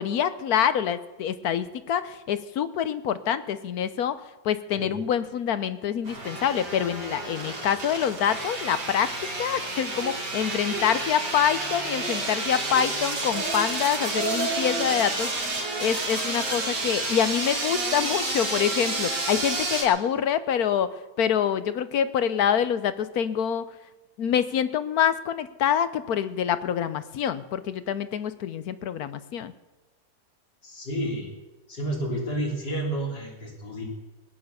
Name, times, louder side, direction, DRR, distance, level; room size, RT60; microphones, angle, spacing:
voice 1, 0.0-4.2 4.4-23.7 24.2-29.5, left 8 dB, 70° left, 13 dB, 1.2 m, -26 dB
sound 1, 6.0-19.8, right 2 dB, 80° right, 3.6 m, -30 dB
Speech, 10.0-10.1 10.6-10.9 11.2-11.3 11.7-12.3 12.7-12.9 13.3-13.7 14.0-15.0, right 4 dB, 25° right, 2.3 m, -33 dB
voice 2, 30.6-31.3 31.7-33.8, right 1 dB, 90° left, -2 dB, 4.1 m, -30 dB
20.5 x 9.2 x 6.7 m, 1.1 s
omnidirectional pair, 1.8 m